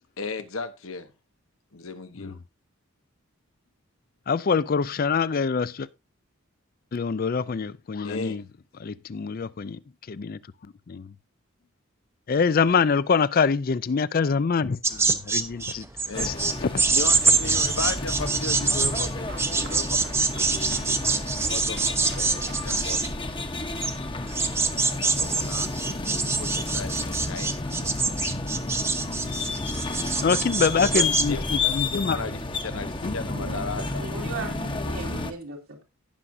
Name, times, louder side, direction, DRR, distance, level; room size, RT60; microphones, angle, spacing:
voice 1, 0.2-1.1 1.7-2.4 8.0-8.4 16.1-16.4 16.9-23.4 24.9-27.9 30.1-30.3 30.8-31.6 31.9-34.1, left 4 dB, 75° left, 1.1 m, -36 dB
voice 2, 4.3-5.9 6.9-8.4 8.8-9.8 10.1-10.4 10.9-11.1 12.3-15.9 16.2-16.8 30.2-32.2 33.0-33.1, left 5 dB, 45° left, 0.4 m, -25 dB
sound 1, 14.8-31.2, right 4 dB, 10° right, 0.6 m, -25 dB
sound 2, 16.1-35.3, left 3 dB, 25° left, 0.9 m, -31 dB
sound 3, 16.9-23.1, right 2 dB, 50° right, 1.0 m, -43 dB
voice 3, 33.3-35.8, right 2 dB, 80° right, 2.2 m, -37 dB
17.5 x 6.0 x 2.6 m
head